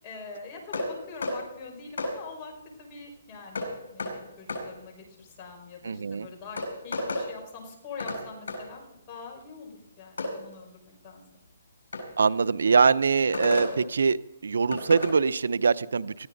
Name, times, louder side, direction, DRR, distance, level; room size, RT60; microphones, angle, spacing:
voice 1, 0.0-2.5 2.8-8.8 9.1-11.2, left 4 dB, 25° left, 1 dB, 5.3 m, -44 dB
sound 1, 0.7-0.9 1.2-1.4 2.0-2.1 3.6-3.7 4.0-4.1 4.5-4.6 6.0-6.1 6.6-7.3 8.0-8.2 8.5-8.6 10.2-10.3 11.9-12.1 13.3-13.7 14.7-15.1, left 2 dB, 75° left, 7.5 m, -31 dB
voice 2, 5.8-6.3 12.2-14.2 14.4-16.3, right 5 dB, 80° right, 17 dB, 0.6 m, -23 dB
19.0 x 15.0 x 4.0 m, 0.91 s
hypercardioid pair, 160°, 0 cm